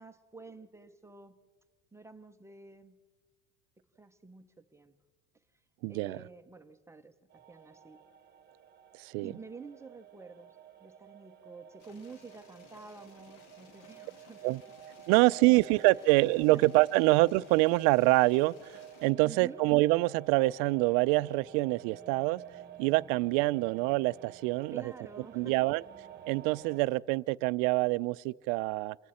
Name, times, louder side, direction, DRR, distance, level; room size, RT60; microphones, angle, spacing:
voice 1, 0.0-1.4 1.9-3.0 4.0-4.9 5.9-8.0 9.2-14.6 16.5-16.6 19.2-19.6 24.7-25.7, right 4 dB, 10° right, 0.6 m, -49 dB
voice 2, 5.8-6.2 8.9-9.3 14.4-14.6 15.1-22.4 22.8-24.8 25.3-25.8 26.3-29.0, right 22 dB, 75° right, 0.5 m, -26 dB
sound 1, 7.3-26.8, right 10 dB, 30° right, 1.1 m, -51 dB
sound 2, 11.8-19.1, left 5 dB, 60° left, 2.3 m, -59 dB
28.0 x 22.0 x 4.2 m
cardioid pair, 145°, 35 cm